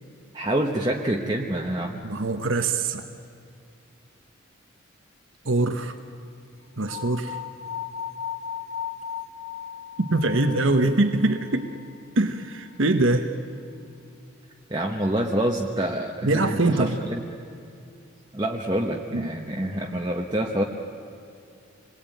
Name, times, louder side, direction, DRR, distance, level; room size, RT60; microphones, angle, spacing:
voice 1, 0.3-2.0 14.7-17.2 18.3-20.6, right 1 dB, 20° right, -1 dB, 1.2 m, -27 dB
voice 2, 2.0-3.0 5.4-5.9 6.8-7.4 10.0-11.7 12.2-13.3 16.2-17.0 19.1-19.3, right 2 dB, 75° right, 6 dB, 1.2 m, -23 dB
sound 1, 6.9-12.0, left 8 dB, 90° left, 0.6 m, -36 dB
27.5 x 21.5 x 9.3 m, 2.5 s
head